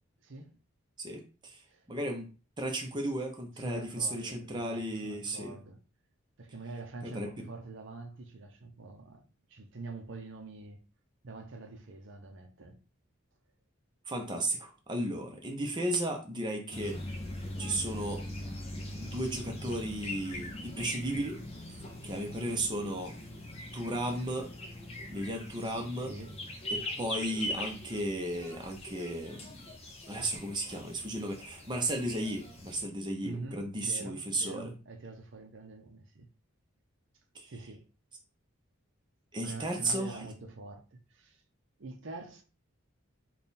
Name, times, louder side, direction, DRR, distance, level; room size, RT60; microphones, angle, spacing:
voice 1, 0.2-0.6 1.7-1.9 3.6-5.8 6.4-10.8 11.2-12.8 26.0-26.4 33.2-36.3 37.5-37.9 39.4-41.4 41.8-42.4, right 3 dB, 55° right, 0.6 m, -45 dB
voice 2, 1.0-1.6 1.9-2.3 2.6-5.6 7.0-7.5 14.1-17.0 17.6-18.2 19.0-21.4 22.0-23.2 23.7-24.5 25.1-26.1 26.7-29.6 30.1-34.7 37.3-37.5 39.3-40.3, right 1 dB, 20° right, 0.7 m, -34 dB
sound 1, 16.7-32.8, left 1 dB, 30° left, 0.4 m, -41 dB
3.5 x 2.3 x 4.1 m
head